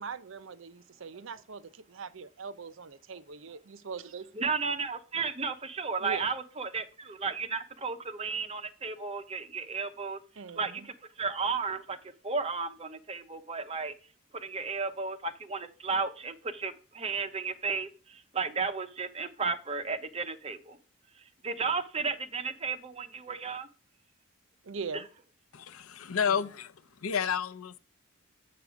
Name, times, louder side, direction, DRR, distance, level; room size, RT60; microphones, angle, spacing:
voice 1, 0.0-4.3 6.0-6.2 10.4-10.9 24.6-25.1, right 4 dB, 70° right, 0.6 m, -41 dB
voice 2, 4.4-10.2 10.6-12.0 12.2-13.9 14.3-20.8 21.4-23.7, right 4 dB, 30° right, 0.8 m, -33 dB
voice 3, 25.5-26.7 27.0-27.8, left 7 dB, 90° left, 0.6 m, -30 dB
6.8 x 6.8 x 4.9 m
head